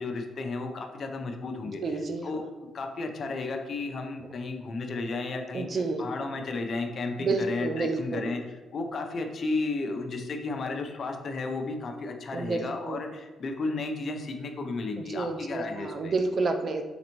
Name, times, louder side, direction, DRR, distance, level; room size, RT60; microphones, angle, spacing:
voice 1, 0.0-1.8 2.2-2.4 2.7-5.7 6.0-8.4 8.7-16.1, left 3 dB, 50° left, 4 dB, 0.6 m, -33 dB
voice 2, 1.8-2.3 5.5-6.0 7.2-8.3 12.3-13.0 15.0-16.8, right 3 dB, 45° right, 6 dB, 0.5 m, -29 dB
4.2 x 4.0 x 3.0 m, 1.2 s
cardioid pair, 90°, 0 cm